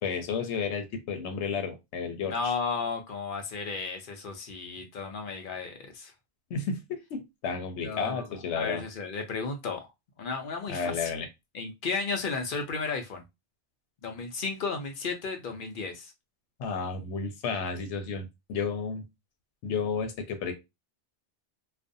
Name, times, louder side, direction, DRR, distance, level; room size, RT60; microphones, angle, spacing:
voice 1, 0.0-2.5 6.5-8.8 10.7-11.3 16.6-19.0 19.6-20.5, left 5 dB, 90° left, 0.9 m, -32 dB
voice 2, 2.2-6.1 7.8-9.9 10.2-11.1 11.5-13.2 14.0-16.1, left 4 dB, 60° left, 0.6 m, -34 dB
2.4 x 2.1 x 2.5 m
omnidirectional pair, 1.1 m